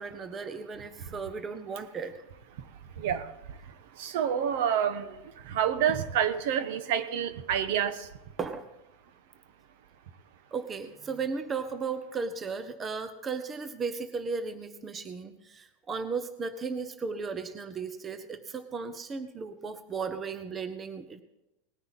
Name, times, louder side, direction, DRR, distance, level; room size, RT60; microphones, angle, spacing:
voice 1, 0.0-2.1 8.4-8.6 10.5-21.2, right 5 dB, 15° right, 10 dB, 0.6 m, -35 dB
voice 2, 3.0-3.3 4.0-8.1, right 9 dB, 60° right, 12 dB, 1.0 m, -28 dB
19.0 x 9.8 x 4.1 m, 0.94 s
supercardioid pair, 170°, 0 cm